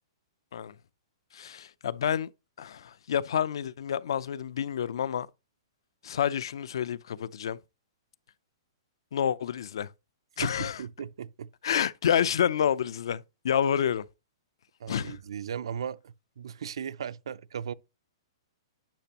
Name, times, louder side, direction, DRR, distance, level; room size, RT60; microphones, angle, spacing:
voice 1, 1.3-2.3 2.6-5.3 6.0-7.6 9.1-9.9 10.4-10.8 11.6-14.0 14.9-15.2, left 8 dB, 65° left, 0.5 m, -28 dB
voice 2, 10.4-11.5 14.8-17.7, right 8 dB, 75° right, 0.5 m, -37 dB
10.0 x 6.0 x 2.9 m
hypercardioid pair, 175°, 3 cm